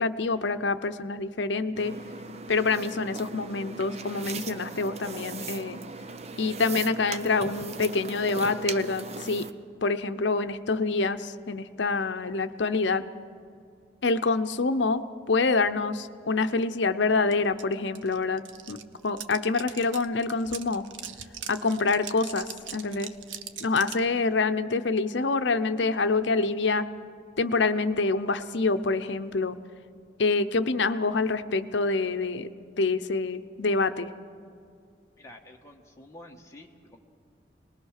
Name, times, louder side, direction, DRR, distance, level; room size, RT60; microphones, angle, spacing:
voice 1, 0.0-1.9 2.5-5.8 6.4-9.5 9.8-13.1 14.0-18.8 19.0-20.8 21.5-23.1 23.6-26.9 27.4-29.6 30.2-32.5 32.8-34.1, left 3 dB, 70° left, 11 dB, 0.7 m, -26 dB
sound 1, 1.8-9.5, right 4 dB, 35° right, 0.7 m, -39 dB
sound 2, 17.3-17.4 17.6-24.1, right 8 dB, 75° right, 0.9 m, -41 dB
voice 2, 35.2-37.0, left 1 dB, 15° left, 0 dB, 1.5 m, -49 dB
26.0 x 20.0 x 6.5 m, 2.4 s
head